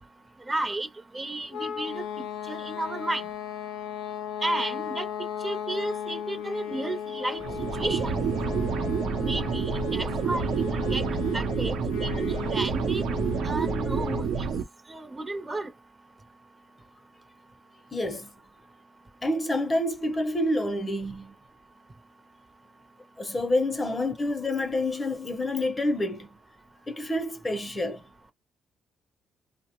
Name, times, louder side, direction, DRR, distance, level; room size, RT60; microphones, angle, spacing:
voice 1, 0.5-0.9 1.1-3.3 4.4-5.1 5.4-8.2 9.2-11.0 11.3-11.7 12.0-13.0 13.4-14.5 14.9-15.7, right 2 dB, 25° right, 0.7 m, -33 dB
sound 1, 1.5-14.3, left 8 dB, 90° left, 0.4 m, -36 dB
sound 2, 7.4-14.6, right 6 dB, 75° right, 0.7 m, -28 dB
voice 2, 17.9-18.3 19.2-21.3 23.2-26.3 26.9-28.0, left 1 dB, 25° left, 0.7 m, -28 dB
2.7 x 2.0 x 3.0 m
cardioid pair, 90°, 0 cm